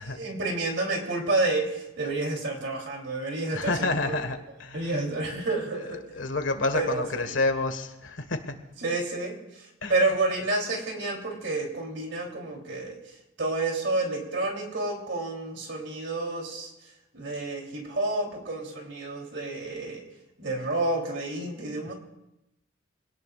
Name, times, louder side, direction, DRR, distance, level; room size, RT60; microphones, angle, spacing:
voice 1, 0.0-4.2 4.7-6.0 6.7-7.3 8.8-9.4 9.9-13.0 13.4-16.7 17.1-20.0 20.4-21.9, right 2 dB, 65° right, 2 dB, 3.3 m, -29 dB
voice 2, 3.5-4.9 6.1-8.4 9.8-10.1, left 3 dB, 85° left, 7 dB, 1.6 m, -29 dB
25.0 x 17.5 x 2.5 m, 0.91 s
head